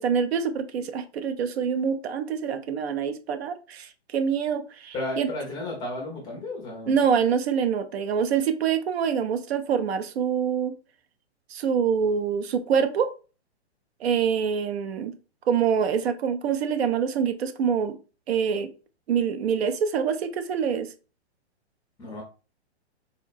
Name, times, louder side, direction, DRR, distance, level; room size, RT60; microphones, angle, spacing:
voice 1, 0.0-5.3 6.9-10.7 11.5-13.1 14.0-15.1 15.5-18.0 18.3-18.7 19.1-20.9, right 7 dB, 65° right, 10 dB, 0.5 m, -25 dB
voice 2, 4.9-7.0 22.0-22.2, left 2 dB, 10° left, 0 dB, 0.5 m, -33 dB
3.8 x 2.1 x 2.4 m, 0.34 s
hypercardioid pair, 135°, 34 cm